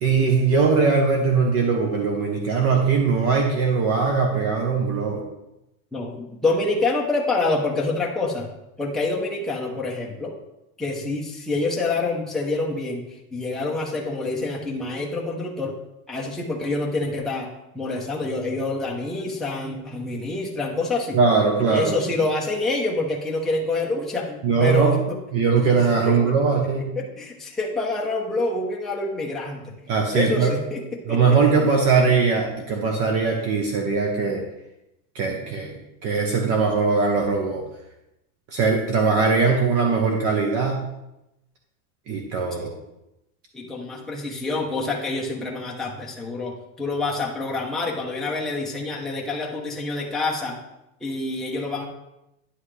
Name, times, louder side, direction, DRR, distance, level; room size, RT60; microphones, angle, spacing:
voice 1, 0.0-5.2 21.1-21.9 24.4-24.9 25.3-26.9 29.9-30.5 31.1-34.4 35.1-35.8 36.0-37.6 38.5-40.8 42.1-42.7, right 5 dB, 35° right, 1 dB, 1.0 m, -20 dB
voice 2, 5.9-8.5 8.8-10.3 10.8-13.0 13.3-15.8 16.1-21.2 21.7-25.2 26.0-26.6 26.9-29.7 30.1-31.4 42.6-42.7 43.5-50.6 51.0-51.8, left 2 dB, ahead, -3 dB, 0.7 m, -27 dB
9.8 x 5.6 x 3.2 m, 0.89 s
supercardioid pair, 150°, 39 cm